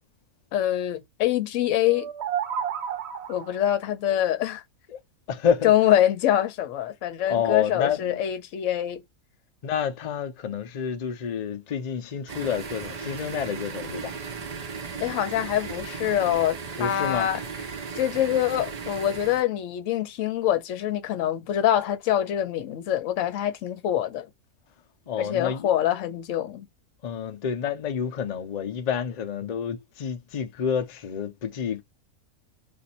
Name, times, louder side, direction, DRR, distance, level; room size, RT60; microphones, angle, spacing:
voice 1, 0.5-2.1 3.3-4.6 5.6-9.0 15.0-17.4 18.0-24.3 25.2-26.7, left 11 dB, 65° left, 1.0 m, -25 dB
sound 1, 1.8-3.7, right 8 dB, 55° right, 0.9 m, -31 dB
voice 2, 5.3-5.7 7.3-8.2 9.6-14.1 16.8-17.3 25.1-25.7 27.0-31.8, left 7 dB, 85° left, 0.3 m, -29 dB
sound 2, 12.3-19.4, right 5 dB, 85° right, 0.3 m, -36 dB
2.6 x 2.5 x 4.1 m
omnidirectional pair, 1.5 m